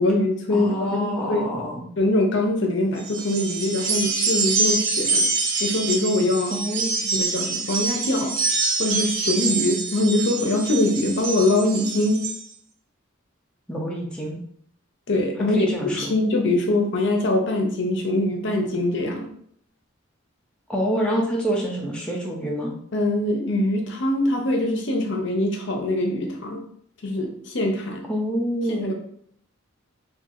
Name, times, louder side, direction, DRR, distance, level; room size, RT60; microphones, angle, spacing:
voice 1, 0.0-1.5 2.0-5.3 5.6-6.6 7.1-8.3 8.8-12.2 15.1-19.3 22.9-26.6 27.0-28.0 28.7-28.9, left 1 dB, 60° left, 2 dB, 0.7 m, -23 dB
voice 2, 0.5-1.9 6.5-7.2 13.7-14.4 15.5-16.1 20.7-22.7 28.1-28.9, equal, 5° left, -3 dB, 0.6 m, -27 dB
sound 1, 3.0-12.4, right 3 dB, 80° right, 0.7 m, -25 dB
4.4 x 2.6 x 2.5 m, 0.65 s
head